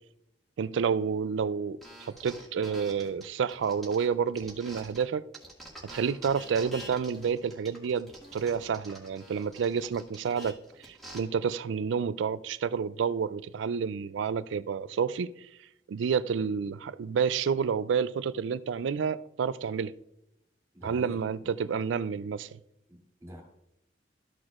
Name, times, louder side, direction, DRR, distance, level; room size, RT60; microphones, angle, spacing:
voice 1, 0.6-5.2 5.8-10.6 10.9-15.5 15.9-19.9 20.8-22.6, right 6 dB, 75° right, 0.4 m, -29 dB
sound 1, 1.8-5.0 5.3-11.2, equal, ahead, 1.9 m, -47 dB
voice 2, 20.7-21.5 22.9-23.4, equal, 15° right, 2.8 m, -46 dB
13.5 x 6.1 x 2.4 m
head